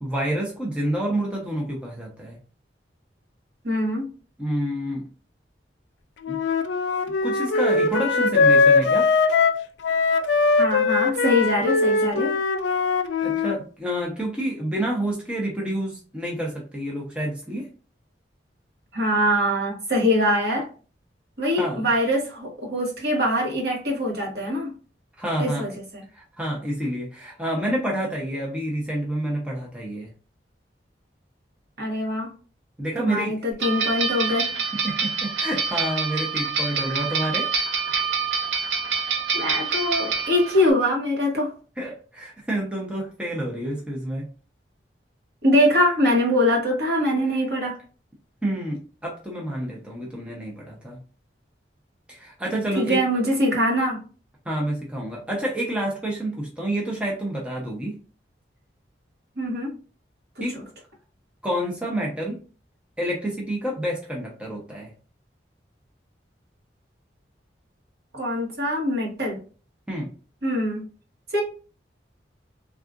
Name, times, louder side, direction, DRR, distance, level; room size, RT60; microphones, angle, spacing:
voice 1, 0.0-2.4 4.4-5.0 6.3-6.4 7.2-9.1 13.2-17.7 21.5-21.9 25.2-25.7 26.1-30.1 32.8-33.4 34.8-37.5 41.8-44.3 47.3-47.4 48.4-51.0 52.1-53.0 54.4-58.0 60.4-60.6 61.4-62.4 63.0-64.9 69.9-70.1, right 1 dB, 5° right, -3 dB, 0.6 m, -28 dB
voice 2, 3.6-4.1 10.6-12.3 18.9-20.7 21.4-24.7 25.4-26.0 31.8-32.3 33.0-34.5 39.3-41.5 45.4-47.8 52.8-54.0 59.4-59.7 68.1-69.4 70.4-70.8 71.3-71.4, equal, 60° right, -1 dB, 1.1 m, -23 dB
Wind instrument woodwind instrument, 6.2-13.5, left 4 dB, 75° left, 0.4 m, -21 dB
sound 1, 33.6-40.7, right 5 dB, 80° right, 0.6 m, -26 dB
3.6 x 2.4 x 2.4 m, 0.37 s
head